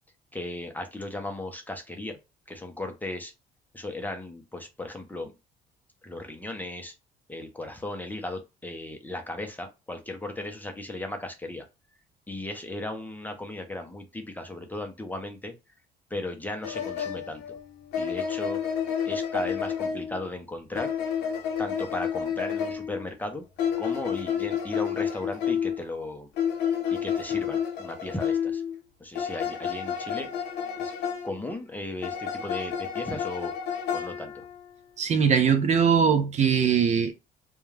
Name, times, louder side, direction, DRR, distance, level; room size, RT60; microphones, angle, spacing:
voice 1, 0.3-2.2 2.5-3.3 3.7-5.3 6.0-6.9 7.3-11.7 12.3-15.5 16.1-17.6 18.0-18.6 19.0-20.9 21.3-23.4 23.8-26.3 26.9-28.6 29.0-30.3 30.8-30.9 31.2-33.5 33.9-34.4, left 2 dB, 10° left, 0.5 m, -36 dB
sound 1, 16.6-20.2 20.7-23.1 23.6-25.8 26.4-28.8 29.1-31.4 32.0-34.7, left 8 dB, 80° left, 0.8 m, -30 dB
voice 2, 35.0-37.1, right 7 dB, 45° right, 0.5 m, -21 dB
2.3 x 2.2 x 3.1 m
cardioid pair, 110°, 17 cm